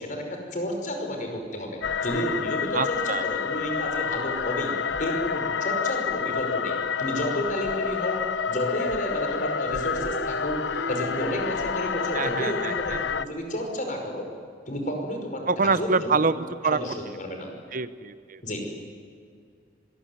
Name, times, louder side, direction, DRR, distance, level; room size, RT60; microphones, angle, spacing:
voice 1, 0.0-4.7 5.0-8.2 8.5-14.3 14.7-16.2 16.6-17.5 18.4-18.6, equal, 45° left, 3 dB, 5.3 m, -31 dB
sound 1, 1.8-13.3, left 6 dB, 80° left, 0.9 m, -29 dB
voice 2, 2.7-3.2 12.1-13.0 15.5-16.4 16.6-16.8 17.7-18.4, right 4 dB, 50° right, 13 dB, 0.8 m, -25 dB
sound 2, 7.7-12.4, equal, 60° left, 6.1 m, -39 dB
25.5 x 20.5 x 9.5 m, 2.2 s
head